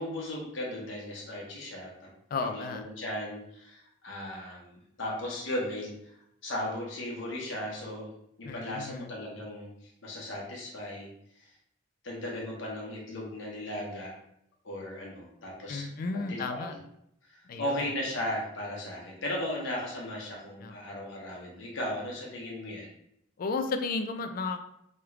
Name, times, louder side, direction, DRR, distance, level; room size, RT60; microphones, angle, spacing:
voice 1, 0.0-2.1 2.4-5.9 6.4-8.1 8.4-11.1 12.0-14.1 14.6-15.9 16.1-16.8 17.3-22.9, left 1 dB, 70° left, -3 dB, 0.9 m, -36 dB
voice 2, 2.3-2.8 8.4-9.1 15.7-16.7 17.5-17.8 20.6-20.8 23.4-24.6, left 4 dB, 45° left, 7 dB, 0.3 m, -33 dB
3.1 x 2.4 x 3.1 m, 0.76 s
head